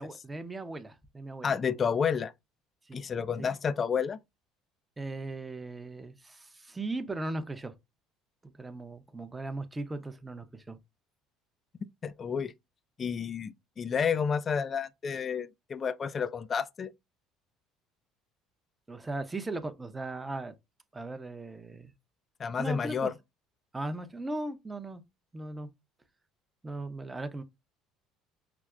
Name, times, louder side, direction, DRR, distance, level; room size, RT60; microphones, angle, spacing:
voice 1, 0.0-1.5 2.9-3.0 3.4-3.5 5.0-7.7 8.4-10.8 18.9-20.5 20.9-21.9 22.6-23.1 23.7-25.0 25.3-25.7 26.6-27.4, right 2 dB, 15° right, 0.6 m, -38 dB
voice 2, 1.4-2.3 2.9-4.2 12.0-12.5 13.0-16.9 22.4-23.1, left 6 dB, 35° left, 0.3 m, -30 dB
5.9 x 2.0 x 2.3 m
supercardioid pair, 100°, 0 cm